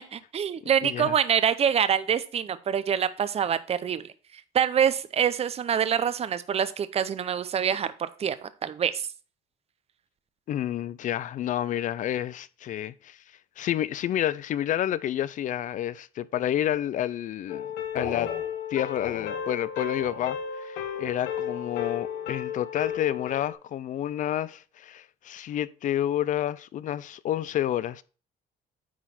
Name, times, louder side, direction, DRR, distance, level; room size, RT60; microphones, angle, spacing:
voice 1, 0.1-4.1 4.5-9.1, right 8 dB, 35° right, 0.6 m, -25 dB
voice 2, 0.8-1.1 10.5-13.2 13.6-17.7 17.9-18.3 18.7-28.0, left 11 dB, 50° left, 0.4 m, -29 dB
sound 1, 17.5-23.5, left 8 dB, 85° left, 1.0 m, -33 dB
9.3 x 3.9 x 4.2 m
cardioid pair, 110°, 17 cm